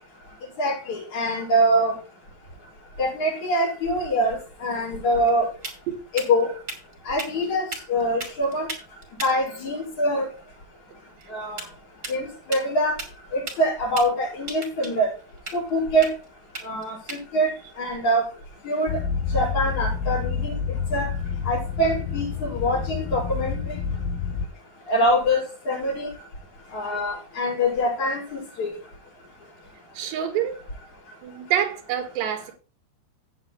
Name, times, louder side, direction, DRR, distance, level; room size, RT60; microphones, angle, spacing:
voice 1, 0.6-1.9 3.0-5.5 6.1-6.5 7.1-8.7 9.2-10.3 11.3-11.6 12.1-12.9 13.3-15.1 15.5-16.1 16.6-17.5 17.8-18.2 18.6-19.0 19.3-20.5 20.9-21.1 21.4-23.6 24.9-26.1 26.7-28.7, equal, 45° left, -3 dB, 6.2 m, -24 dB
sound 1, 4.4-19.1, right 2 dB, 25° right, 2.1 m, -41 dB
sound 2, 18.9-24.5, left 6 dB, 75° left, 2.7 m, -28 dB
voice 2, 30.0-30.5 31.2-32.5, right 10 dB, 85° right, 4 dB, 3.6 m, -26 dB
16.0 x 8.9 x 2.2 m, 0.36 s
omnidirectional pair, 4.7 m